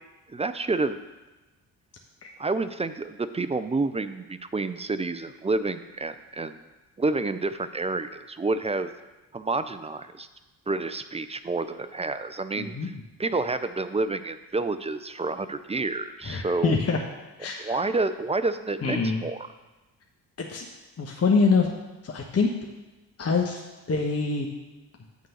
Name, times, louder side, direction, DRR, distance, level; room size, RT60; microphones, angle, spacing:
voice 1, 0.3-1.0 2.4-6.6 7.0-8.9 9.3-10.3 10.7-12.9 13.2-16.8 17.6-19.5, right 3 dB, 15° right, 11 dB, 0.4 m, -29 dB
voice 2, 12.6-12.9 16.2-17.0 17.4-17.8 18.8-19.3 20.4-20.7 21.0-21.7 22.0-22.5 23.2-23.6 23.9-24.5, left 4 dB, 30° left, 1 dB, 1.1 m, -25 dB
8.3 x 3.7 x 6.6 m, 1.1 s
hypercardioid pair, 40°, 48 cm